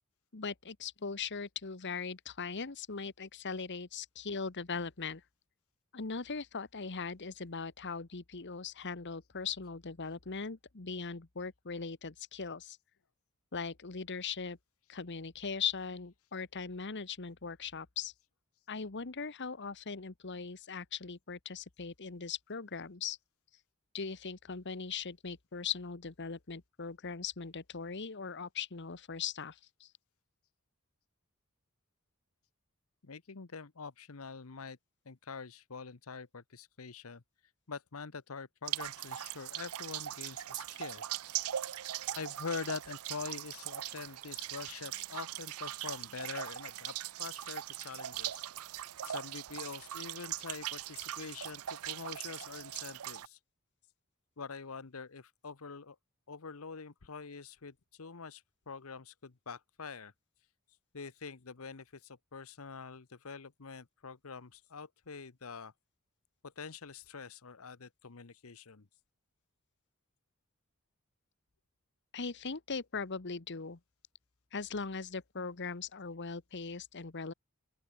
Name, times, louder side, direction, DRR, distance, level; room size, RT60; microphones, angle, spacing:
voice 1, 0.3-5.2 5.9-12.8 13.5-14.6 14.9-18.1 18.7-23.2 23.9-29.9 72.1-73.8 74.5-77.3, left 5 dB, 55° left, 1.2 m, -40 dB
voice 2, 33.0-34.8 35.1-37.2 37.7-41.0 42.1-48.4 49.0-53.4 54.4-56.0 56.3-60.1 60.9-65.7 66.4-68.9, left 5 dB, 75° left, 1.0 m, -45 dB
sound 1, 38.7-53.3, right 12 dB, 85° right, 0.6 m, -40 dB
open air
head